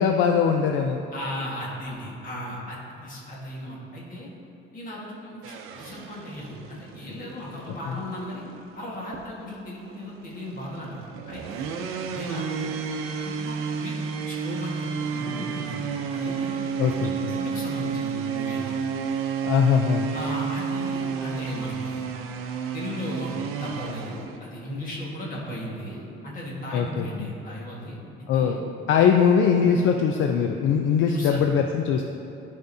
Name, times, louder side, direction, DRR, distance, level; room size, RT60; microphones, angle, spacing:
voice 1, 0.0-1.0 7.9-8.0 16.8-17.1 19.4-20.1 26.7-27.3 28.3-28.6 28.9-32.0, left 7 dB, 70° left, 4 dB, 0.4 m, -21 dB
voice 2, 1.1-4.3 4.7-8.4 8.7-11.7 12.1-12.8 13.2-13.9 14.3-17.1 17.4-18.8 20.1-22.0 22.7-27.9 28.3-28.6 31.1-31.4, left 1 dB, 40° left, -4 dB, 1.6 m, -36 dB
Chainsaw Crosscutting, 5.4-24.4, right 6 dB, 90° right, 0.6 m, -32 dB
11.5 x 5.1 x 2.7 m, 3.0 s
cardioid pair, 155°, 21 cm